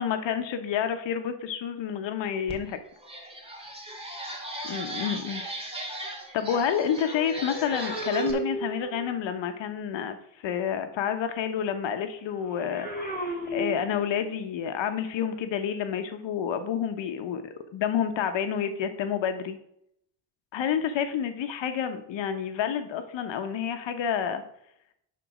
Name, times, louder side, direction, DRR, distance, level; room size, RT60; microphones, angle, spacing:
voice 1, 0.0-2.8 4.7-5.4 6.3-10.2 10.4-12.9 13.5-19.6 20.5-24.4, left 8 dB, 75° left, 8 dB, 1.0 m, -29 dB
sound 1, 2.5-2.6 3.0-8.3, right 1 dB, 15° right, 2.1 m, -38 dB
sound 2, 6.5-9.2 12.4-14.3 15.2-15.4, right 2 dB, 20° left, 2.8 m, -35 dB
10.5 x 4.0 x 6.0 m, 0.74 s
cardioid pair, 115°, 45 cm